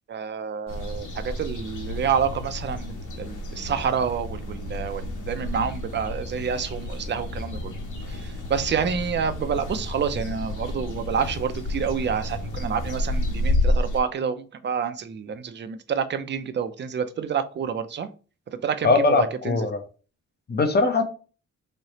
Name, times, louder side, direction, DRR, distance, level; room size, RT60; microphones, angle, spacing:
voice 1, 0.1-7.7 8.1-18.1 18.5-19.6, right 7 dB, 35° right, 0.4 m, -28 dB
sound 1, 0.7-14.0, left 1 dB, 70° left, 1.2 m, -30 dB
voice 2, 18.8-19.8 20.5-21.0, left 3 dB, 30° left, 0.7 m, -21 dB
3.2 x 2.8 x 4.0 m
wide cardioid pair, 135°, 31 cm